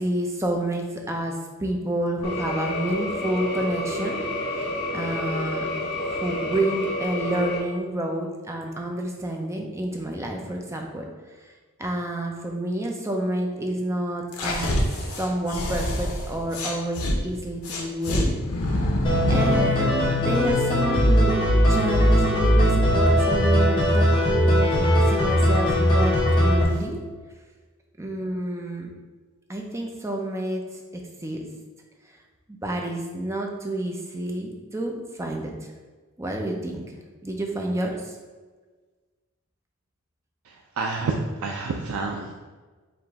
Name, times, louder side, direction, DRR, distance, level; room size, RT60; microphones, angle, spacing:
voice 1, 0.0-1.3 1.6-4.6 4.9-5.7 6.0-11.1 11.8-14.8 15.1-18.3 19.3-21.3 21.7-27.0 28.0-28.9 29.5-30.6 31.2-31.4 32.5-35.5 36.2-36.8 37.2-38.1, right 1 dB, 15° right, 1 dB, 0.5 m, -29 dB
sound 1, 2.2-7.6, left 1 dB, 55° left, 1.5 m, -29 dB
sound 2, 14.3-17.2 17.6-19.7, left 1 dB, 85° left, 0.7 m, -26 dB
sound 3, 19.0-26.6, equal, 25° left, 1.0 m, -19 dB
voice 2, 40.5-42.3, right 3 dB, 80° right, 1 dB, 0.4 m, -29 dB
4.8 x 2.6 x 3.5 m, 1.4 s
head